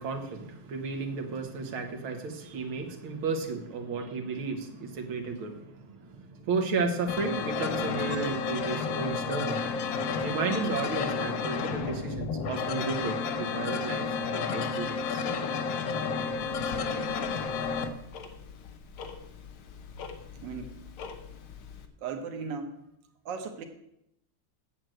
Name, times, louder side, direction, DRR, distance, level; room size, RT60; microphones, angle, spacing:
voice 1, 0.0-9.7 10.2-15.2, right 4 dB, 90° right, 4 dB, 2.2 m, -33 dB
sound 1, 7.1-17.9, left 5 dB, 70° left, 1.6 m, -31 dB
Tick-tock, 16.3-21.9, left 5 dB, 90° left, 1.9 m, -45 dB
voice 2, 22.0-22.7 23.2-23.6, right 5 dB, 65° right, 5 dB, 1.7 m, -36 dB
7.9 x 7.7 x 7.7 m, 0.80 s
omnidirectional pair, 2.2 m